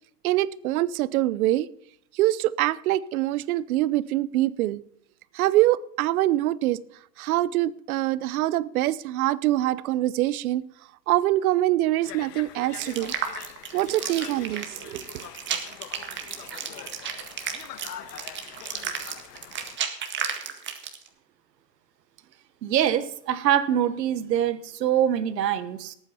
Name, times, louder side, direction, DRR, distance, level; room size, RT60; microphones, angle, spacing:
voice 1, 0.2-1.7 2.1-4.8 5.3-6.8 7.2-10.6 11.1-13.1 13.7-15.3, right 15 dB, 60° right, 19 dB, 0.8 m, -24 dB
Conversation, 12.0-19.8, left 11 dB, 70° left, 1.4 m, -44 dB
sound 1, 12.8-21.1, right 7 dB, 20° right, 1.9 m, -33 dB
voice 2, 22.6-26.0, right 10 dB, 80° right, 13 dB, 1.4 m, -24 dB
18.5 x 8.8 x 4.3 m, 0.71 s
hypercardioid pair, 130°, 49 cm